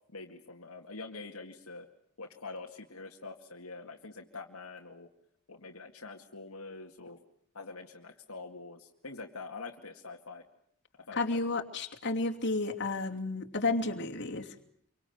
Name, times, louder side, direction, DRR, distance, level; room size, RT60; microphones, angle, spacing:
voice 1, 0.1-1.9 2.2-5.1 5.5-7.2 7.5-10.4 11.1-11.6, left 3 dB, 70° left, 2 dB, 2.2 m, -45 dB
voice 2, 11.2-14.5, left 3 dB, 55° left, 2 dB, 2.9 m, -32 dB
27.0 x 24.5 x 8.0 m, 0.65 s
head